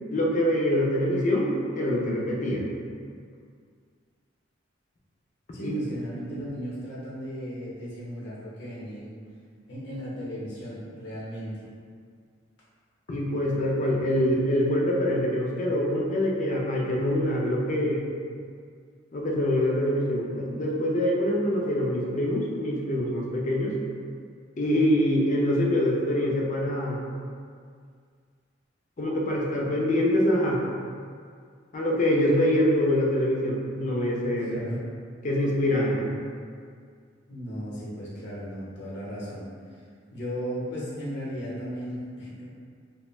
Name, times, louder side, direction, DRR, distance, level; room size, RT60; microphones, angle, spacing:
voice 1, 0.1-1.5 1.8-2.6 5.6-5.8 13.1-18.0 19.1-23.8 24.6-27.0 29.0-30.6 31.7-34.6 35.2-36.1, left 1 dB, 40° left, -2 dB, 0.4 m, -25 dB
voice 2, 5.5-9.2 9.7-11.6 34.4-34.8 37.3-39.4 39.7-39.8 40.1-42.5, equal, 65° left, -7 dB, 0.8 m, -36 dB
2.6 x 2.1 x 3.0 m, 2.1 s
head